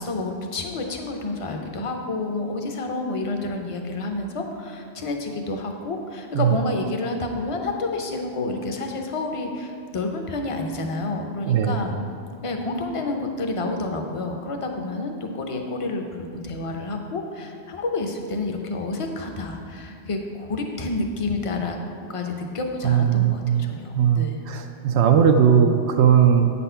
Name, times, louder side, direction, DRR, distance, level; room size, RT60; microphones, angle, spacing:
voice 1, 0.0-11.9 12.4-24.4, left 2 dB, 35° left, 3 dB, 0.7 m, -29 dB
voice 2, 11.5-11.8 22.8-23.7 24.0-26.5, right 8 dB, 90° right, 4 dB, 0.9 m, -18 dB
8.5 x 4.2 x 5.6 m, 2.3 s
omnidirectional pair, 1.1 m